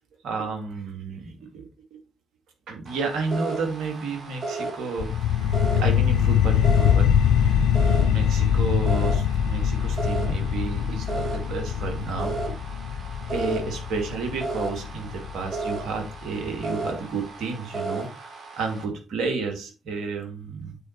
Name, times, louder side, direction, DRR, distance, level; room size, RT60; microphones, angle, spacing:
voice 1, 0.2-1.7 1.9-2.0 2.7-5.1 5.7-12.4 13.3-20.8, right 4 dB, 65° right, 2 dB, 2.1 m, -31 dB
sound 1, 2.9-18.9, right 3 dB, 50° right, 2.2 m, -35 dB
sound 2, 5.0-16.0, left 8 dB, 75° left, 0.4 m, -23 dB
8.5 x 4.2 x 4.4 m, 0.32 s
hypercardioid pair, 45°, 0 cm